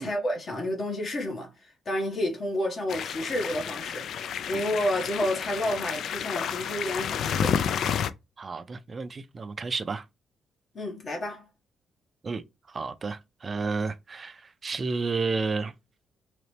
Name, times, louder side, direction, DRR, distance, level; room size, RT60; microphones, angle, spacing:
voice 1, 0.0-7.6 10.7-11.5, left 1 dB, 45° left, 1.4 m, -30 dB
sound 1, 2.9-8.1, left 8 dB, 70° left, 0.3 m, -30 dB
voice 2, 8.4-10.0 12.2-12.4 12.7-15.7, right 4 dB, 30° right, 0.3 m, -31 dB
4.0 x 3.0 x 3.2 m
cardioid pair, 135°, 0 cm